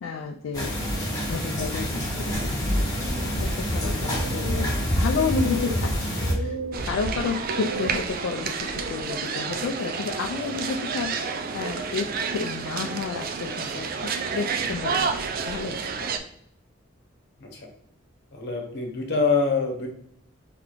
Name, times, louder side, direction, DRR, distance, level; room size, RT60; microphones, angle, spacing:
voice 1, 0.0-0.8 1.3-6.6 6.8-16.1, left 5 dB, 70° left, 3 dB, 0.3 m, -31 dB
sound 1, 0.5-6.3, equal, 20° left, 1.2 m, -26 dB
sound 2, 2.6-9.0, right 1 dB, 80° right, 0.7 m, -37 dB
sound 3, 6.7-16.2, right 5 dB, 45° right, 0.4 m, -30 dB
voice 2, 18.3-19.9, left 4 dB, 55° left, 2 dB, 1.0 m, -25 dB
4.0 x 3.3 x 3.1 m, 0.71 s
head